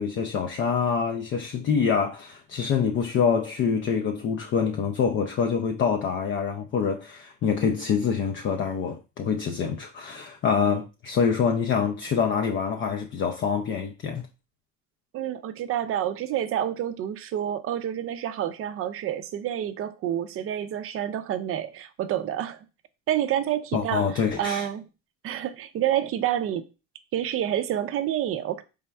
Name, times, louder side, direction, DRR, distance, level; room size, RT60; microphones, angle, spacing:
voice 1, 0.0-14.3 23.7-24.7, left 6 dB, 35° left, 0.4 m, -26 dB
voice 2, 15.1-22.6 23.1-24.0 24.4-24.8 25.2-26.6 27.1-28.6, right 11 dB, 40° right, 0.4 m, -28 dB
4.2 x 3.4 x 2.3 m
cardioid pair, 110°, 34 cm